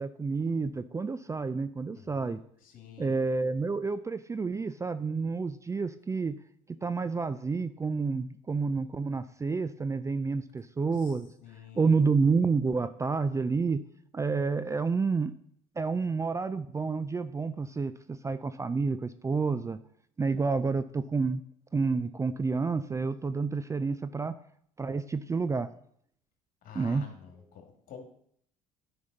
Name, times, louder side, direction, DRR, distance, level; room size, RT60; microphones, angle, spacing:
voice 1, 0.0-2.4 3.0-6.4 6.8-11.3 11.8-13.9 14.1-15.4 15.8-19.8 20.2-21.4 21.7-24.4 24.8-25.7 26.7-27.1, right 4 dB, 20° right, 13 dB, 0.4 m, -29 dB
voice 2, 1.9-3.1 11.0-11.1 11.4-12.0 26.6-28.1, left 8 dB, 55° left, 4 dB, 2.2 m, -49 dB
9.6 x 5.2 x 4.0 m, 0.66 s
hypercardioid pair, 70°, 16 cm